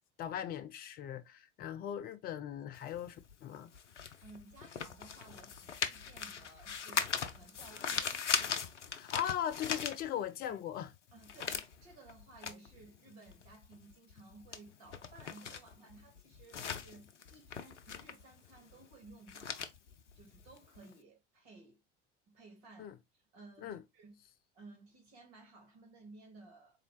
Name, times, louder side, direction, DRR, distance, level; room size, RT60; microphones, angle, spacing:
voice 1, 0.2-3.7 8.9-10.9 22.8-22.9 23.6-23.8, left 10 dB, 25° left, 0.4 m, -39 dB
sound 1, 2.8-10.5 10.8-20.9, left 7 dB, 80° left, 0.5 m, -40 dB
voice 2, 3.9-8.6 10.5-10.6 11.1-19.7 20.2-21.8 22.3-24.2 24.5-26.8, right 3 dB, 50° right, 1.8 m, -57 dB
4.0 x 2.9 x 2.9 m
figure-of-eight pair, 70°, 35 cm